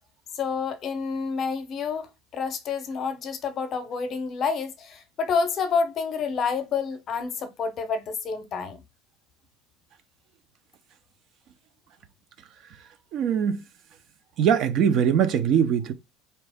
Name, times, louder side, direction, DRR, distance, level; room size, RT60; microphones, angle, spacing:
voice 1, 0.3-8.8, left 5 dB, 35° left, 0.7 m, -28 dB
voice 2, 13.1-13.6 14.4-15.9, right 8 dB, 45° right, 0.6 m, -21 dB
3.9 x 2.9 x 3.5 m
cardioid pair, 140°, 0 cm